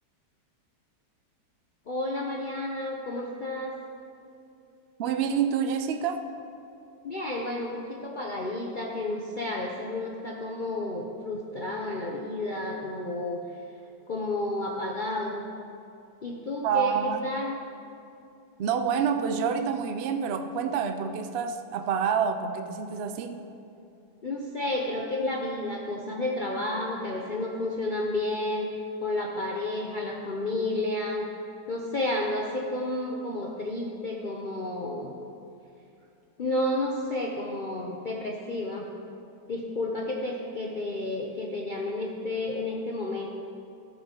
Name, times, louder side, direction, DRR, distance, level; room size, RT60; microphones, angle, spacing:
voice 1, 1.9-3.8 7.0-13.4 14.1-15.4 16.2-17.6 24.2-28.7 29.0-31.3 31.7-35.1 36.4-38.9 39.5-43.3, left 2 dB, 60° left, -1 dB, 0.5 m, -31 dB
voice 2, 5.0-6.2 16.6-17.3 18.6-23.4, right 7 dB, 80° right, 8 dB, 0.5 m, -27 dB
12.5 x 6.8 x 4.4 m, 2.7 s
omnidirectional pair, 1.8 m